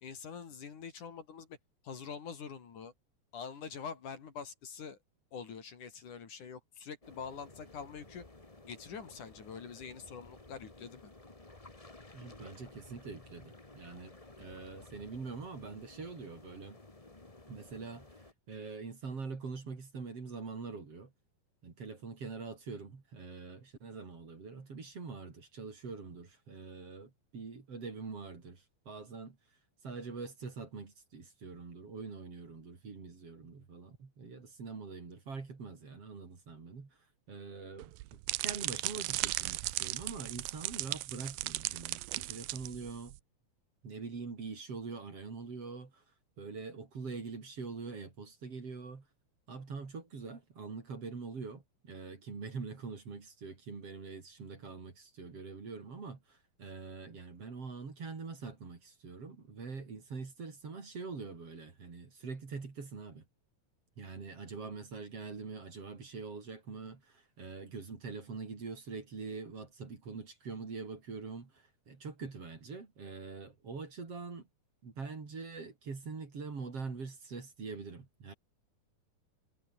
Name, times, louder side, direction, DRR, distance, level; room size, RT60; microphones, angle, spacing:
voice 1, 0.0-1.6 1.8-2.9 3.3-5.0 5.3-8.2 8.7-11.1, left 6 dB, 55° left, 4.2 m, -45 dB
sound 1, 7.0-18.3, left 2 dB, 15° left, 1.1 m, -55 dB
voice 2, 12.1-16.8 17.5-21.1 21.6-29.4 29.8-37.0 37.3-43.2 43.8-46.0 46.4-49.1 49.5-63.2 64.0-74.5 74.8-78.3, right 4 dB, 40° right, 4.5 m, -44 dB
sound 2, 37.8-43.2, right 19 dB, 80° right, 2.4 m, -37 dB
omnidirectional pair, 4.3 m